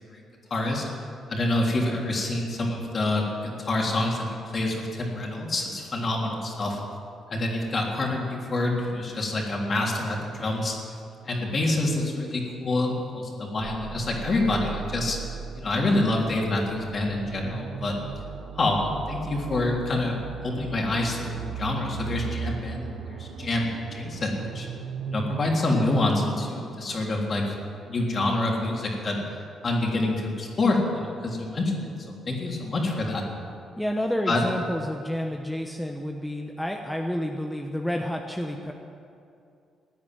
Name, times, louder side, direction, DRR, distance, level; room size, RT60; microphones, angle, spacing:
voice 1, 0.5-0.8 1.3-6.8 7.3-10.8 11.2-15.2 15.6-18.0 18.5-20.1 20.4-24.7 25.1-27.5 27.9-33.2 34.3-34.4, left 2 dB, 40° left, -1 dB, 3.5 m, -27 dB
sound 1, 13.6-27.4, right 7 dB, 80° right, 0.9 m, -38 dB
voice 2, 33.8-38.7, equal, 5° left, 2 dB, 1.1 m, -30 dB
15.5 x 9.4 x 9.3 m, 2.5 s
cardioid pair, 90°, 0 cm